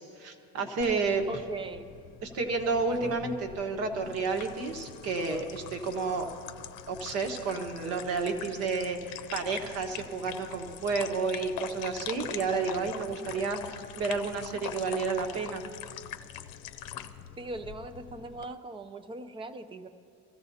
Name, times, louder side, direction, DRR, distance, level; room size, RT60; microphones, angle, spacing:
voice 1, 0.0-1.2 2.2-6.3 6.9-15.6, right 4 dB, 50° right, 4 dB, 1.4 m, -31 dB
sound 1, 0.8-18.4, left 10 dB, 65° left, 0.7 m, -43 dB
voice 2, 1.3-1.9 17.4-19.9, right 2 dB, 15° right, 10 dB, 0.4 m, -40 dB
24.5 x 15.0 x 2.8 m, 2.3 s
cardioid pair, 170°, 33 cm